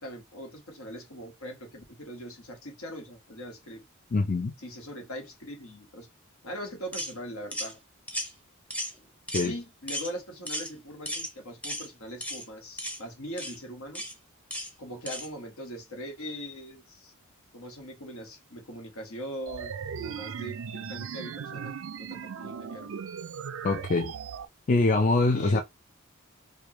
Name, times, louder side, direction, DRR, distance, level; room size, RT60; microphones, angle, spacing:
voice 1, 0.0-3.8 4.6-6.1 6.4-7.8 9.4-14.0 14.8-17.1 17.5-19.7 20.0-21.7 22.0-22.9 25.3-25.6, equal, 75° left, 1.4 m, -41 dB
voice 2, 4.1-4.5 9.3-9.5 23.6-24.1 24.7-25.6, left 3 dB, 35° left, 0.4 m, -24 dB
sound 1, 6.9-7.1 7.5-7.7 8.1-8.3 8.7-9.0 9.3-9.5 9.9-10.1 10.5-10.7 11.1-11.3 11.6-11.9 12.2-12.4 12.8-13.0 13.4-13.6 14.0-14.1 14.5-14.7 15.1-15.3, equal, 5° left, 0.7 m, -34 dB
sound 2, 19.5-24.5, right 6 dB, 60° right, 0.4 m, -38 dB
4.8 x 2.3 x 3.0 m
head